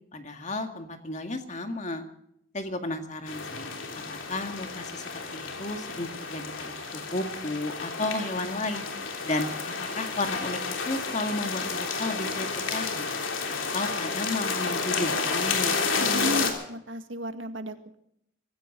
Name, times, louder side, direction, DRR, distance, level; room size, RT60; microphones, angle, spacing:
voice 1, 0.1-2.0 2.5-3.7 4.1-5.0 5.3-6.7 7.1-8.8 9.3-10.6 10.9-13.1 13.5-15.8, left 2 dB, 35° left, 5 dB, 2.0 m, -33 dB
sound 1, 3.3-16.5, left 4 dB, 75° left, 3.3 m, -31 dB
voice 2, 16.0-18.0, equal, 70° right, 8 dB, 1.8 m, -34 dB
24.0 x 15.5 x 3.9 m, 0.73 s
head